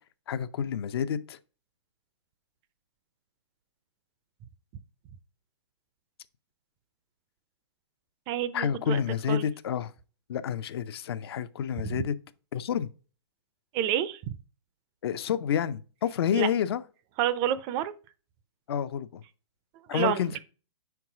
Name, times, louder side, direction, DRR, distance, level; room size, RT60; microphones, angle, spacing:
voice 1, 0.3-1.4 8.5-9.9 10.3-12.1 12.5-12.9 15.0-16.8 18.7-19.2 19.9-20.3, left 8 dB, 60° left, 0.6 m, -29 dB
voice 2, 8.3-9.0 9.3-9.5 13.7-14.2 16.3-16.5 17.2-17.9 19.9-20.4, right 11 dB, 30° right, 0.4 m, -28 dB
5.3 x 4.7 x 4.7 m
hypercardioid pair, 130°, 15 cm